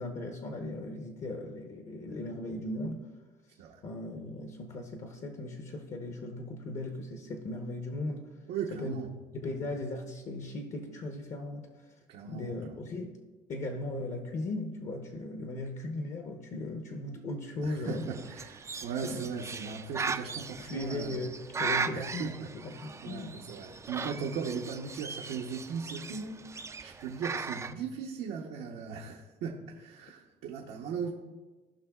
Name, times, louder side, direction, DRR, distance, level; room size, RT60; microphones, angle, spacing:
voice 1, 0.0-3.0 3.8-8.3 8.7-9.0 9.3-11.7 12.3-13.2 13.5-18.1 19.0-19.3 20.6-23.5, left 2 dB, 45° left, 0.8 m, -37 dB
voice 2, 8.5-9.1 9.4-9.7 12.1-12.5 17.6-21.2 21.9-31.1, right 6 dB, 80° right, 0.8 m, -38 dB
Bird, 17.8-27.7, right 4 dB, 15° right, 0.3 m, -38 dB
15.5 x 5.5 x 2.3 m
cardioid pair, 110°, 17 cm